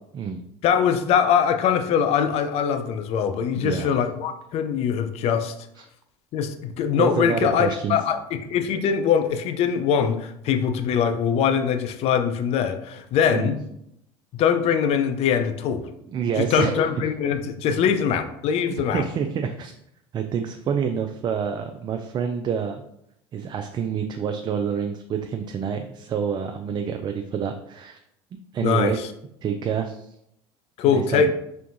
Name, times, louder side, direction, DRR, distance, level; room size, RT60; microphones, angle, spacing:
voice 1, 0.6-5.5 6.3-13.6 14.4-15.9 16.4-19.0 28.6-29.1 30.8-31.3, left 7 dB, 55° left, 8 dB, 0.5 m, -22 dB
voice 2, 3.5-3.9 5.8-5.9 7.0-8.0 13.3-13.5 16.1-16.9 18.9-19.7 20.1-22.8 23.3-28.0 28.5-29.0 29.4-30.1 30.9-31.3, right 7 dB, 35° right, 6 dB, 0.4 m, -27 dB
4.5 x 3.4 x 2.6 m, 0.76 s
hypercardioid pair, 80°, 13 cm